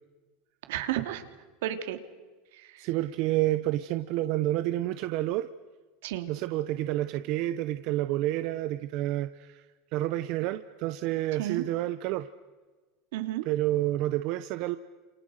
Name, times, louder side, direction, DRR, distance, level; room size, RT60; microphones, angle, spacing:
voice 1, 0.7-1.2 1.6-2.0 2.5-2.9 6.0-6.3 11.4-11.7 13.1-13.4, right 13 dB, 70° right, 8 dB, 3.0 m, -32 dB
voice 2, 2.8-5.5 6.3-9.6 9.9-12.3 13.4-14.8, right 15 dB, 45° right, 11 dB, 0.8 m, -29 dB
30.0 x 28.0 x 6.6 m, 1.3 s
supercardioid pair, 175°, 0 cm